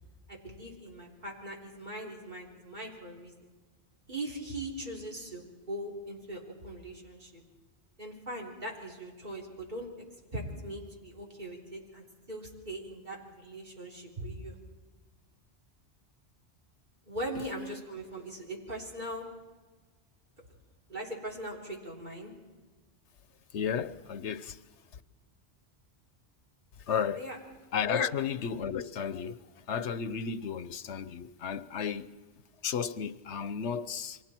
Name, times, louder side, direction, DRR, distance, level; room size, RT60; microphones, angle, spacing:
voice 1, 0.3-3.5 4.1-7.4 8.0-9.9 10.3-14.6 17.1-19.3 20.9-22.3 27.1-27.4 27.9-28.2, right 1 dB, 40° right, 3.9 m, -40 dB
voice 2, 23.5-24.6 24.9-25.0 26.8-27.2 27.7-32.2 32.6-34.2, left 7 dB, 90° left, 1.1 m, -33 dB
29.5 x 24.0 x 4.5 m
omnidirectional pair, 1.1 m